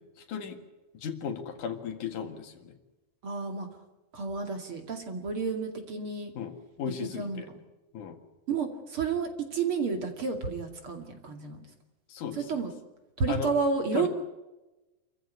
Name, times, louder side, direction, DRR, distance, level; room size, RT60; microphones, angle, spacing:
voice 1, 0.3-0.6 0.9-2.7 6.3-7.5 7.9-8.2 12.1-12.6 13.3-13.5 13.9-14.1, left 7 dB, 70° left, 6 dB, 3.3 m, -36 dB
voice 2, 3.2-3.7 4.1-6.3 7.0-7.6 8.5-11.6 12.3-12.7 13.2-14.1, right 5 dB, 45° right, 4 dB, 3.0 m, -31 dB
28.0 x 15.0 x 9.6 m, 1.1 s
omnidirectional pair, 3.8 m